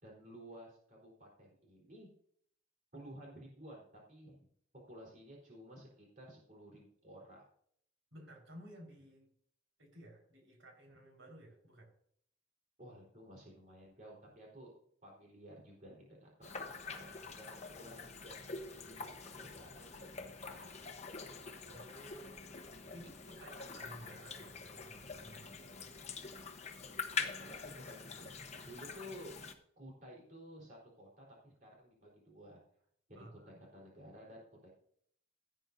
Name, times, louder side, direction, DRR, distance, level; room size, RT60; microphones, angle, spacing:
voice 1, 0.0-2.1 2.9-4.5 4.9-7.4 12.8-14.7 15.0-18.3 18.8-20.9 22.8-23.0 27.2-29.3 29.8-32.6 33.1-34.7, equal, 40° right, -3 dB, 4.1 m, -54 dB
voice 2, 8.1-9.3 9.8-11.9 21.7-22.6 22.9-26.0 33.1-33.6, right 1 dB, 80° right, 0 dB, 4.9 m, -55 dB
sound 1, 16.4-29.5, left 5 dB, 35° left, 1.1 m, -45 dB
16.5 x 9.0 x 2.7 m, 0.64 s
head